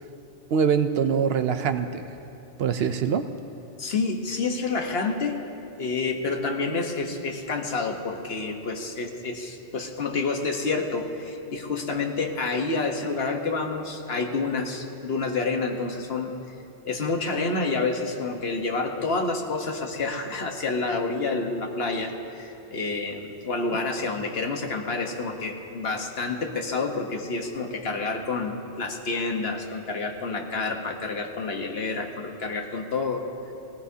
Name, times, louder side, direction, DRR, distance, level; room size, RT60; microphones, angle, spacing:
voice 1, 0.5-2.1 2.6-3.3, right 7 dB, 65° right, 10 dB, 0.8 m, -23 dB
voice 2, 3.8-5.4 5.8-16.3 16.9-33.5, left 3 dB, 60° left, 3 dB, 1.3 m, -28 dB
20.0 x 17.5 x 2.8 m, 2.8 s
omnidirectional pair, 1.2 m